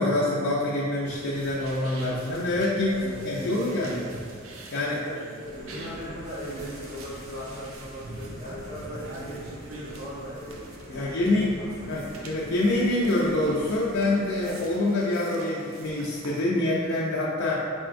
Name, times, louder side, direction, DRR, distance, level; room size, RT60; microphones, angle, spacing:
voice 1, 0.0-4.0 4.7-5.0 10.9-11.5 11.9-17.6, left 1 dB, 65° left, -6 dB, 0.5 m, -26 dB
sound 1, 1.0-16.4, right 2 dB, 85° right, 0.5 m, -45 dB
voice 2, 2.9-3.8 4.8-10.6 10.9-12.3, equal, 35° right, -9 dB, 1.3 m, -39 dB
sound 2, 5.4-14.6, equal, 15° left, 0.6 m, -44 dB
4.5 x 4.2 x 2.5 m, 2.2 s
head